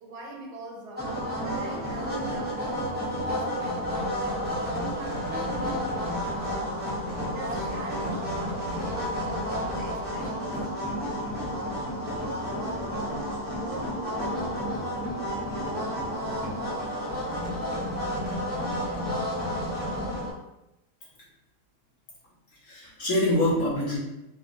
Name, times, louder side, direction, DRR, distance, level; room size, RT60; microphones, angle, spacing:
voice 1, 0.0-4.0 4.5-7.0 7.3-10.7, right 2 dB, 85° right, 1.3 m, -42 dB
sound 1, 1.0-20.3, equal, 10° right, 0.5 m, -31 dB
voice 2, 22.5-24.0, left 1 dB, 60° left, 1.6 m, -25 dB
4.5 x 2.1 x 2.7 m
omnidirectional pair, 1.7 m